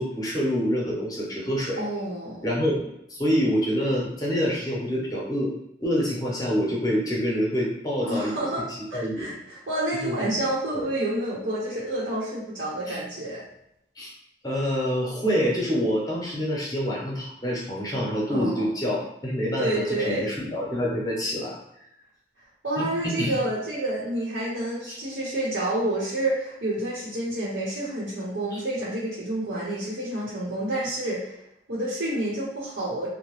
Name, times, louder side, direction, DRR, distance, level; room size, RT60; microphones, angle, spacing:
voice 1, 0.0-1.8 2.4-2.8 3.1-5.5 5.8-8.4 8.8-9.2 10.0-10.4 10.7-10.9 12.9-13.0 14.0-14.1 14.4-21.5 22.8-22.9 23.2-23.4 24.9-25.0, equal, 20° left, -4 dB, 0.7 m, -26 dB
voice 2, 1.8-2.4 8.0-13.4 18.3-18.6 19.6-20.3 22.6-31.3 31.7-33.1, right 1 dB, 90° right, -8 dB, 0.9 m, -29 dB
2.8 x 2.1 x 3.1 m, 0.80 s
head